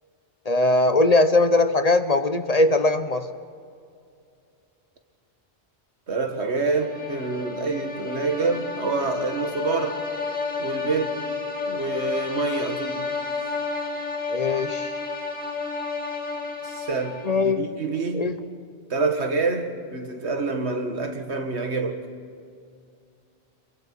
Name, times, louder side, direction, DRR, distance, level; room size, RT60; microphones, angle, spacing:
voice 1, 0.5-3.3 14.3-15.0 17.2-17.7 18.1-18.4, left 2 dB, 40° left, 10 dB, 0.8 m, -20 dB
voice 2, 6.1-10.0 10.6-11.2 11.7-13.1 16.6-18.3 18.9-22.1, right 3 dB, 80° right, 5 dB, 1.9 m, -27 dB
sound 1, 6.5-17.5, left 4 dB, 10° left, 1.9 m, -31 dB
27.0 x 22.5 x 4.6 m, 2.4 s
omnidirectional pair, 1.1 m